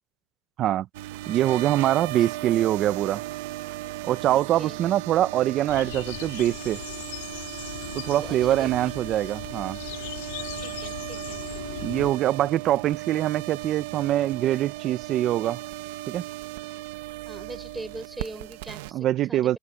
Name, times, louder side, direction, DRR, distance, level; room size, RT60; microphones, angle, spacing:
sound 1, 0.9-18.9, right 17 dB, 65° right, 0.9 m, -36 dB
voice 1, 1.3-3.2 4.0-6.8 7.9-9.8 11.8-15.6 16.1-16.2 18.9-19.6, right 13 dB, 30° right, 0.5 m, -24 dB
voice 2, 4.3-4.8 8.2-8.7 10.6-11.4 17.2-19.6, right 2 dB, 5° right, 4.6 m, -41 dB
sound 2, 5.7-12.1, left 18 dB, 80° left, 2.8 m, -39 dB
supercardioid pair, 170°, 0 cm